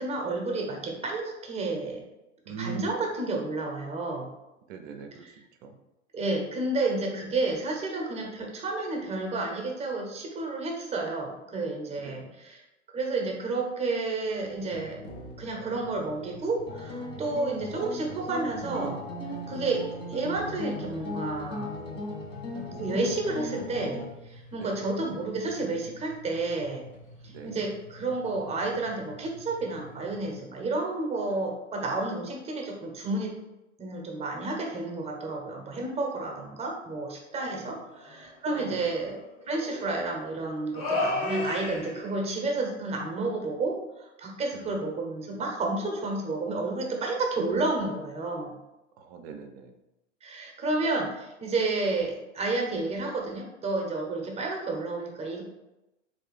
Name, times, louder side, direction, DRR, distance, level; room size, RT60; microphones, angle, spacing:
voice 1, 0.0-2.0 2.5-4.3 5.2-5.3 6.1-12.6 12.9-15.0 15.4-19.0 19.5-19.8 20.1-21.7 22.5-26.9 27.2-33.3 33.8-39.2 39.5-48.6 50.2-55.4, right 3 dB, 15° right, 1 dB, 0.8 m, -31 dB
voice 2, 2.5-3.0 4.7-5.3 5.6-5.8 12.0-12.3 24.6-24.9 27.3-27.6 37.5-37.8 38.5-38.8 44.5-44.8 49.0-49.7, right 5 dB, 45° right, 5 dB, 0.5 m, -41 dB
sound 1, 14.7-30.4, equal, 60° left, 1.0 m, -49 dB
sound 2, 16.7-24.0, left 1 dB, 15° left, 0.4 m, -37 dB
sound 3, 38.0-38.3 38.9-40.0 40.7-42.2, left 2 dB, 35° left, 1.0 m, -31 dB
3.2 x 2.6 x 3.3 m, 0.95 s
figure-of-eight pair, 90°, 38 cm